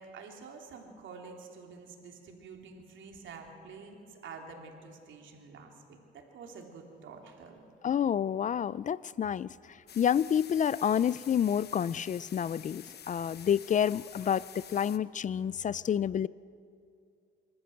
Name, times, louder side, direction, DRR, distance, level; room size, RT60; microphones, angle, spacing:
voice 1, 0.0-7.6 9.4-9.6 13.0-13.1, right 4 dB, 75° right, 2 dB, 3.3 m, -48 dB
voice 2, 7.8-16.3, left 8 dB, 40° left, 20 dB, 0.4 m, -29 dB
sound 1, 9.9-15.0, left 9 dB, 55° left, 1.0 m, -49 dB
26.5 x 13.5 x 7.9 m, 2.4 s
cardioid pair, 90°, 20 cm